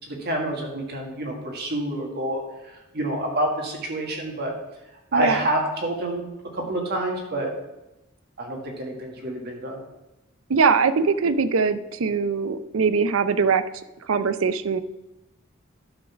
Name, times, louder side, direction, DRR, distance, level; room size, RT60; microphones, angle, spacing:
voice 1, 0.0-4.5 5.1-6.2 6.5-7.5 8.4-9.8, right 1 dB, 50° right, 0 dB, 1.8 m, -28 dB
voice 2, 10.5-13.6 14.1-14.8, right 5 dB, 75° right, 12 dB, 0.5 m, -22 dB
11.0 x 3.9 x 6.0 m, 0.95 s
head